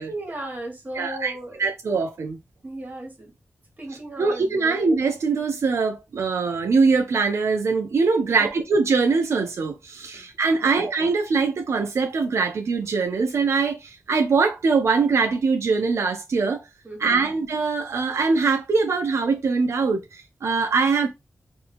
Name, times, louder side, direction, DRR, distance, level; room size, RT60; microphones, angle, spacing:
voice 1, 0.1-1.6 2.6-3.3 3.8-4.8 8.2-8.5 10.1-10.2 10.5-10.9 16.8-17.3, right 1 dB, 35° right, 1.5 m, -36 dB
voice 2, 1.0-1.3 1.6-2.4 4.2-16.6 17.0-21.1, right 4 dB, 90° right, 0.5 m, -22 dB
2.6 x 2.6 x 4.2 m
wide cardioid pair, 95°, 5 cm